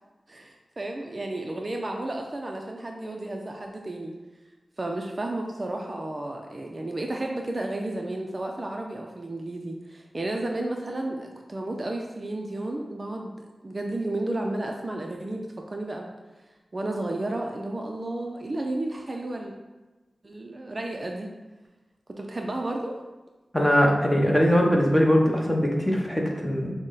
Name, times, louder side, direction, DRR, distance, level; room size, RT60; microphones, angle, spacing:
voice 1, 0.3-4.1 4.8-13.4 13.6-16.2 16.7-19.5 20.2-21.3 22.1-23.0, right 1 dB, 35° right, 1 dB, 0.4 m, -32 dB
voice 2, 23.5-26.7, equal, 5° left, -1 dB, 0.8 m, -21 dB
6.1 x 2.1 x 3.9 m, 1.2 s
wide cardioid pair, 80°, 0 cm